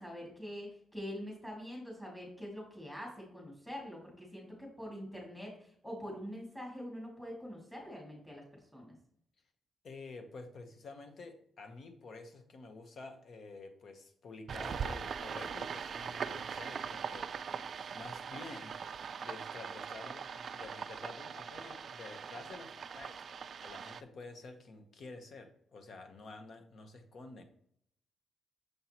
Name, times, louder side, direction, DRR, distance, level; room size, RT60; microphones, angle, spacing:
voice 1, 0.0-9.0, equal, 5° left, -2 dB, 2.3 m, -45 dB
voice 2, 9.8-18.7 19.2-27.4, left 3 dB, 55° left, 6 dB, 1.0 m, -50 dB
sound 1, 14.5-24.0, right 6 dB, 50° right, 0.3 m, -41 dB
6.7 x 5.5 x 3.0 m, 0.67 s
cardioid pair, 135°, 0 cm